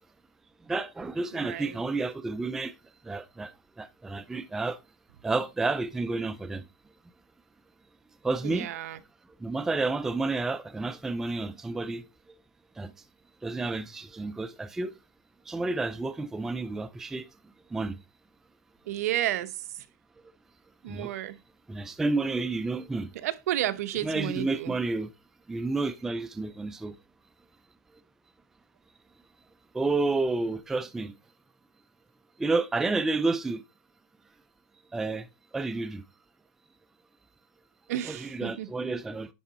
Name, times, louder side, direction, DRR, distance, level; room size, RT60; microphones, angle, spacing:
voice 1, 0.7-2.7 3.1-4.8 5.2-6.6 8.2-8.7 9.4-12.0 12.8-12.9 13.4-14.9 15.5-17.3 17.7-18.0 20.9-21.1 21.7-23.1 24.0-25.1 25.5-27.0 29.7-31.1 32.4-33.6 34.9-35.3 35.5-36.0 38.1-39.3, right 3 dB, 5° right, 0.3 m, -30 dB
voice 2, 1.3-1.8 8.4-9.0 18.9-19.9 20.8-21.4 23.1-24.7 37.9-38.7, right 13 dB, 60° right, 0.8 m, -32 dB
10.0 x 3.7 x 4.2 m
supercardioid pair, 160°, 9 cm